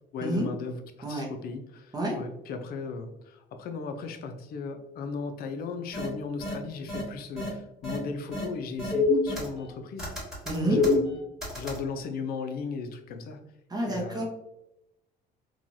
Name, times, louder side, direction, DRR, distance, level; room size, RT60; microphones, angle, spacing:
voice 1, 0.1-10.1 10.6-11.1 11.5-13.4 13.9-14.2, left 4 dB, 65° left, 6 dB, 0.5 m, -36 dB
sound 1, 5.9-6.1 6.4-6.5 6.9-7.0 7.4-7.5 7.8-8.0 8.3-8.4 8.8-9.7 10.0-11.8, left 3 dB, 5° right, 1.4 m, -27 dB
voice 2, 10.5-10.8 13.7-14.2, right 1 dB, 25° right, 0 dB, 0.6 m, -28 dB
3.0 x 2.3 x 2.6 m, 0.87 s
cardioid pair, 110°, 17 cm